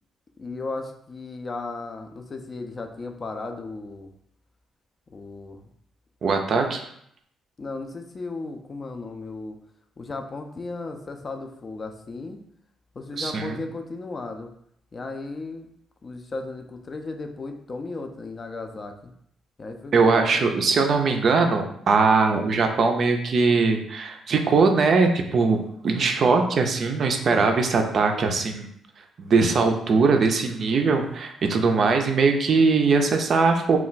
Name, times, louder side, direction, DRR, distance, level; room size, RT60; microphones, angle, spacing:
voice 1, 0.4-4.1 5.1-5.7 7.6-9.6 10.0-12.4 12.9-14.5 14.9-15.7 16.0-19.1 19.6-20.5, left 3 dB, 35° left, 5 dB, 0.4 m, -35 dB
voice 2, 6.2-6.8 13.2-13.6 19.9-25.6 25.8-28.7 29.2-33.8, right 4 dB, 55° right, 4 dB, 0.4 m, -21 dB
2.3 x 2.1 x 3.9 m, 0.70 s
cardioid pair, 90°, 0 cm